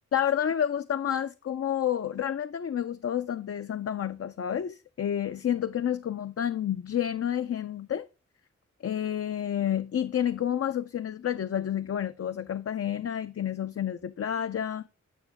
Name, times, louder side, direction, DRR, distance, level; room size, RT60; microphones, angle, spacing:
voice 1, 0.1-8.1 8.8-14.8, left 9 dB, 55° left, 0.5 m, -29 dB
9.3 x 5.9 x 3.6 m
wide cardioid pair, 75°, 29 cm